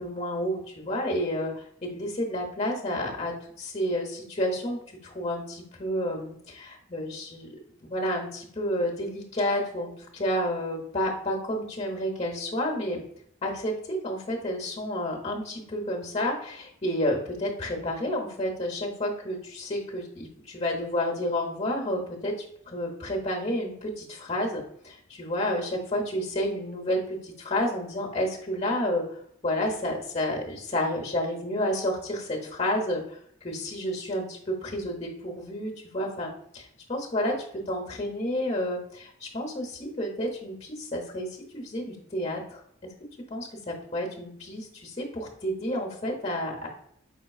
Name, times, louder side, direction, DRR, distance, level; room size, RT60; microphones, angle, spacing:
voice 1, 0.0-7.5 7.8-13.0 13.4-22.3 22.7-29.0 29.4-37.3 37.7-41.3 41.5-42.6 43.3-46.7, left 1 dB, 30° left, 0 dB, 0.8 m, -30 dB
5.1 x 3.7 x 2.3 m, 0.68 s
head